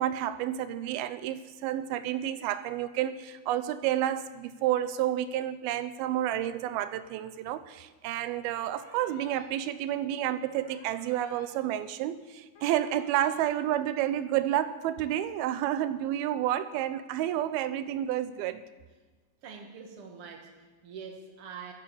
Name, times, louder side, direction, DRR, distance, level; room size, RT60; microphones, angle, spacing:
voice 1, 0.0-18.6, right 12 dB, 80° right, 2.4 m, -30 dB
sound 1, 8.6-9.5 10.6-11.5 12.6-13.5, left 2 dB, 40° left, 2.0 m, -53 dB
voice 2, 19.4-21.7, right 6 dB, 50° right, 1.8 m, -44 dB
12.5 x 11.0 x 7.1 m
omnidirectional pair, 4.6 m